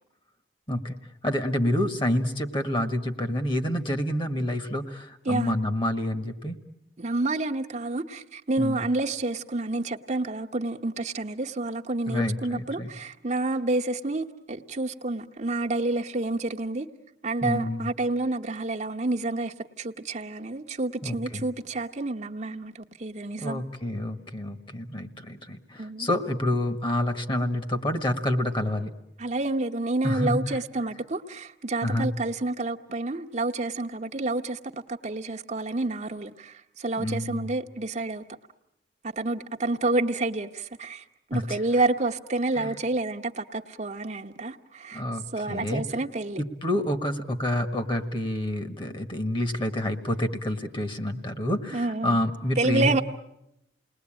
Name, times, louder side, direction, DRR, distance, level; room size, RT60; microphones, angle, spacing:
voice 1, 1.2-6.6 8.6-8.8 12.1-12.9 17.4-17.9 21.0-21.5 23.4-28.9 30.0-30.6 31.8-32.1 37.0-37.5 41.3-41.6 42.5-42.8 44.9-45.8 46.3-53.0, left 1 dB, 30° left, 7 dB, 1.6 m, -28 dB
voice 2, 7.0-16.9 17.2-23.6 25.8-26.1 29.2-38.2 39.1-41.0 41.3-45.0 45.3-46.4 51.7-52.2 52.6-53.0, right 2 dB, 40° right, 3 dB, 1.0 m, -29 dB
29.0 x 20.5 x 8.9 m, 0.85 s
head